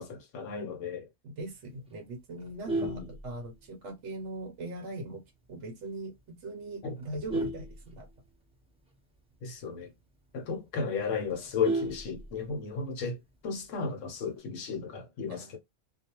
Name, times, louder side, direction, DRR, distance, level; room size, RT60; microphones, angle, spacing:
voice 1, 0.0-1.1 2.8-3.1 6.8-6.9 9.4-9.9 10.3-13.2 13.4-15.6, left 5 dB, 65° left, 1.0 m, -34 dB
voice 2, 1.2-5.2 5.5-8.1 15.3-15.6, right 2 dB, 65° right, 0.9 m, -40 dB
Vehicle horn car horn honking, 2.4-3.9 4.3-4.6 4.9-5.0 5.4-5.5 5.8-6.2 6.7-8.6 8.9-9.0 9.3-9.4 9.8-9.9 10.3-10.4 10.6-12.7 13.9-14.3, right 2 dB, 5° right, 0.6 m, -35 dB
2.4 x 2.2 x 2.9 m
omnidirectional pair, 1.4 m